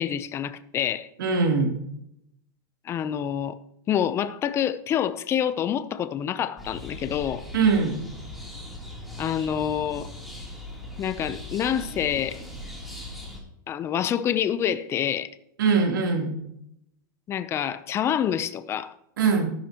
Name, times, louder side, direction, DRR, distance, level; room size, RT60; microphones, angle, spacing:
voice 1, 0.0-1.1 2.9-3.6 3.9-7.4 9.2-10.1 11.0-12.4 13.7-15.3 17.3-18.9, left 9 dB, 25° left, 0.6 m, -27 dB
voice 2, 1.2-1.7 7.5-7.9 15.6-16.3 19.2-19.5, right 5 dB, 90° right, 3.3 m, -21 dB
sound 1, 6.6-13.4, left 1 dB, ahead, 3.2 m, -39 dB
13.5 x 11.5 x 3.0 m
supercardioid pair, 145°, 11 cm